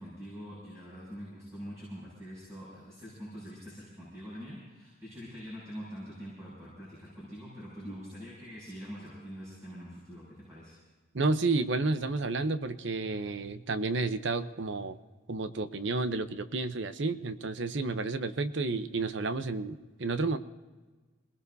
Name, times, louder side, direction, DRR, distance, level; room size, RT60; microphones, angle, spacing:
voice 1, 0.0-10.8, equal, 15° right, -8 dB, 6.9 m, -44 dB
voice 2, 11.1-15.0 15.3-20.4, right 3 dB, 65° right, 11 dB, 0.8 m, -31 dB
27.0 x 19.0 x 2.7 m, 1.3 s
head